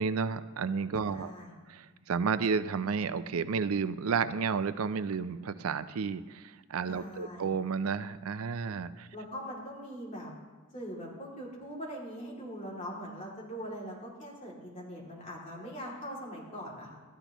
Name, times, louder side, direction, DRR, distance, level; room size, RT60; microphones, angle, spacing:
voice 1, 0.0-1.3 1.7-9.1, right 5 dB, 75° right, 13 dB, 0.5 m, -31 dB
voice 2, 1.0-1.5 6.9-7.5 9.1-10.3 10.7-17.0, equal, 35° left, -4 dB, 2.6 m, -42 dB
13.5 x 10.0 x 3.0 m, 1.3 s
head